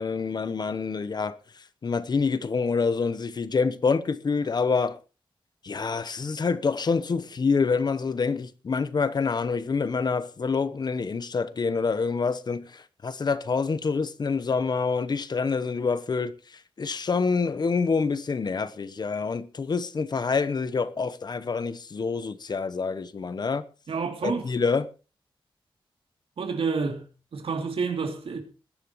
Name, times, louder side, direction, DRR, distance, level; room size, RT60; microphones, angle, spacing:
voice 1, 0.0-1.4 1.8-5.0 5.6-16.3 16.8-23.6 24.2-24.9, left 5 dB, 50° left, 1.0 m, -26 dB
voice 2, 23.9-24.5 26.4-27.1 27.3-28.4, right 5 dB, 90° right, 2.9 m, -29 dB
20.5 x 11.0 x 3.1 m
wide cardioid pair, 140°, 9 cm